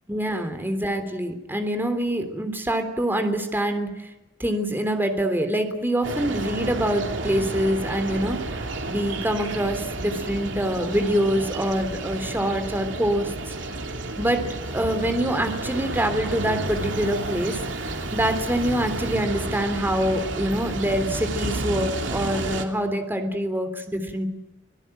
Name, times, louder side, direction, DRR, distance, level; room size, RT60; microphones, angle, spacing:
voice 1, 0.1-3.9 4.4-8.4 8.9-13.3 14.2-14.4 14.7-17.6 18.1-24.3, right 1 dB, 10° right, 7 dB, 3.3 m, -25 dB
sound 1, 6.0-22.6, right 2 dB, 75° right, 2.9 m, -31 dB
sound 2, 12.2-19.2, right 2 dB, 10° left, 6.7 m, -49 dB
26.0 x 18.0 x 9.0 m, 1.0 s
head